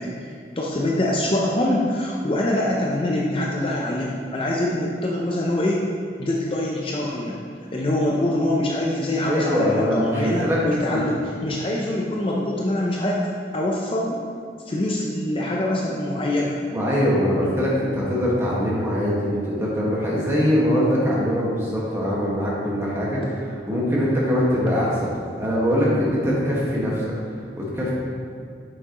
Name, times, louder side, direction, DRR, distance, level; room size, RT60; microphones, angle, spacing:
voice 1, 0.0-5.9 6.2-7.4 7.7-13.2 13.5-14.2 14.7-16.6, left 1 dB, 30° left, -2 dB, 0.6 m, -24 dB
voice 2, 9.2-10.6 10.8-11.0 16.7-23.2 23.7-24.9 25.4-27.0 27.6-27.9, equal, 15° right, -6 dB, 1.6 m, -22 dB
8.7 x 6.8 x 3.0 m, 2.3 s
head